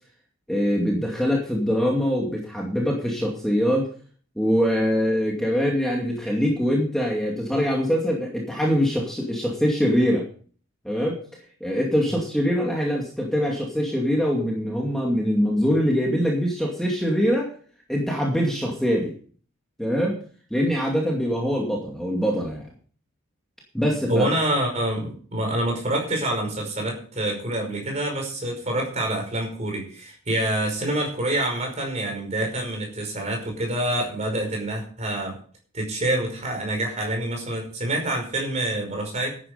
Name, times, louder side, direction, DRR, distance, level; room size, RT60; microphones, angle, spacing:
voice 1, 0.5-3.9 4.4-10.2 10.8-11.2 11.6-17.5 17.9-19.1 19.8-20.2 20.5-22.7 23.7-24.3, equal, ahead, -2 dB, 2.4 m, -23 dB
voice 2, 24.1-35.4 35.7-39.4, right 1 dB, 35° right, 2 dB, 5.3 m, -26 dB
12.0 x 10.0 x 5.2 m, 0.43 s
head